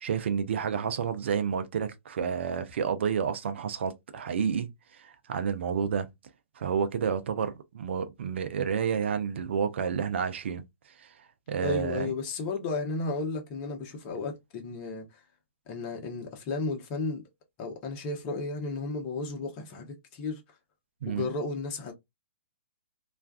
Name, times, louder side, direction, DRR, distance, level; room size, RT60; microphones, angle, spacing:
voice 1, 0.0-6.1 6.6-10.6 11.0-12.1 21.0-21.2, right 7 dB, 65° right, 0.5 m, -30 dB
voice 2, 11.6-15.2 15.7-17.2 17.6-20.4 21.0-21.9, left 3 dB, 35° left, 0.8 m, -33 dB
2.4 x 2.2 x 2.3 m
hypercardioid pair, 125°, 7 cm